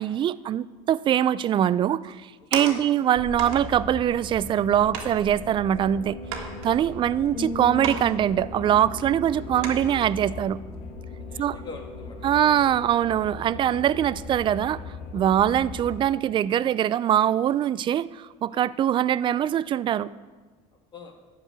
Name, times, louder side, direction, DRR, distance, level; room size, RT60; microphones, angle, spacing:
voice 1, 0.0-6.2 6.6-10.6 11.4-11.6 12.2-14.8 15.1-20.1, right 10 dB, 35° right, 18 dB, 0.4 m, -23 dB
sound 1, 2.0-3.0 3.4-3.6 4.4-4.5 4.9-5.2 5.7-5.8 6.3-7.3 7.8-8.1 8.4-8.5 9.0-9.1 9.6-10.1 10.6-10.8, right 6 dB, 80° right, 1.7 m, -34 dB
voice 2, 2.4-2.9 6.4-7.1 9.4-9.7 11.3-12.5 13.5-13.7 15.1-15.3 18.5-18.7 20.7-21.1, left 3 dB, 30° left, 2 dB, 1.9 m, -46 dB
sound 2, 3.1-16.0, left 3 dB, 50° left, 1.6 m, -39 dB
sound 3, 7.3-11.0, left 1 dB, ahead, 3.5 m, -39 dB
11.5 x 4.8 x 8.0 m, 1.3 s
supercardioid pair, 100°, 14 cm